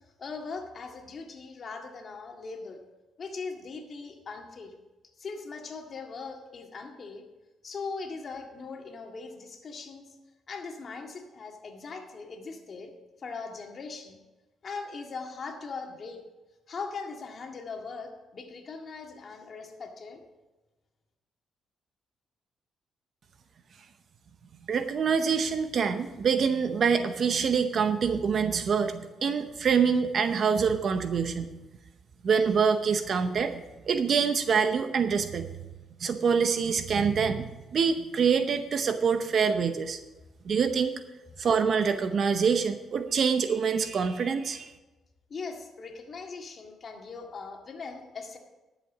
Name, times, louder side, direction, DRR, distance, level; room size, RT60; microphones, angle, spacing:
voice 1, 0.2-2.8 3.2-4.7 5.2-7.2 7.6-10.1 10.5-12.9 13.2-14.2 14.6-16.2 16.7-20.2 45.3-48.4, left 4 dB, 45° left, 2 dB, 1.9 m, -40 dB
voice 2, 24.7-31.5 32.2-35.5 36.0-40.0 40.5-40.9 41.4-44.7, right 6 dB, 55° right, 9 dB, 0.7 m, -25 dB
11.5 x 7.4 x 6.1 m, 1.1 s
cardioid pair, 90°, 0 cm